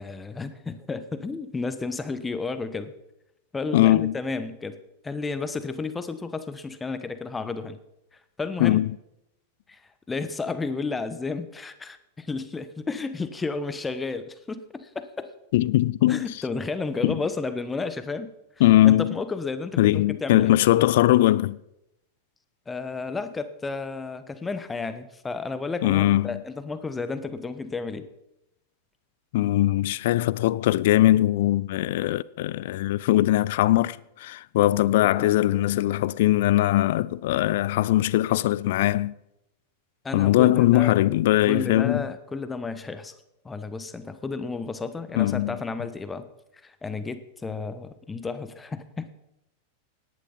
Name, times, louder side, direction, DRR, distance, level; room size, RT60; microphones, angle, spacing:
voice 1, 0.0-2.9 3.5-4.8 5.0-7.8 8.4-8.8 9.7-9.8 10.1-15.3 16.1-18.3 18.8-20.5 22.7-28.1 35.2-35.3 40.0-40.9 41.5-43.1 43.4-46.3 46.6-49.1, left 4 dB, 15° left, 1.2 m, -32 dB
voice 2, 3.7-4.1 8.6-8.9 15.5-16.3 17.0-17.2 18.6-19.2 19.8-21.6 25.8-26.4 29.3-39.1 40.1-42.1 45.2-45.6, left 15 dB, 55° left, 0.5 m, -21 dB
18.0 x 11.0 x 5.5 m
figure-of-eight pair, 90°, 0 cm